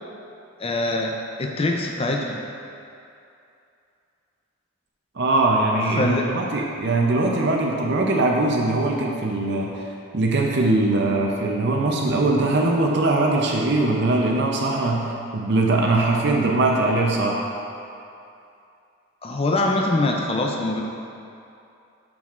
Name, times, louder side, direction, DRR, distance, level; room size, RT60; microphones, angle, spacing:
voice 1, 0.6-1.1 1.4-2.4 6.0-6.3 19.2-20.8, left 2 dB, 25° left, 1 dB, 0.5 m, -23 dB
voice 2, 5.2-9.7 10.1-17.5, right 2 dB, 50° right, -1 dB, 0.6 m, -21 dB
7.1 x 6.2 x 2.5 m, 2.6 s
head